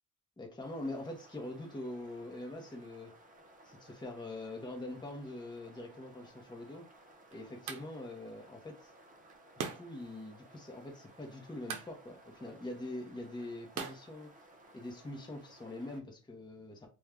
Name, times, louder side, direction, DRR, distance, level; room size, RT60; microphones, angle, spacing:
voice 1, 0.4-3.1 3.6-6.9 7.3-8.9 9.6-14.3 14.7-16.9, left 2 dB, 15° left, 0.8 m, -44 dB
sound 1, 0.6-16.0, right 1 dB, 25° right, 0.7 m, -59 dB
sound 2, 6.4-15.0, right 6 dB, 85° right, 0.7 m, -47 dB
2.6 x 2.3 x 3.4 m
cardioid pair, 90°, 30 cm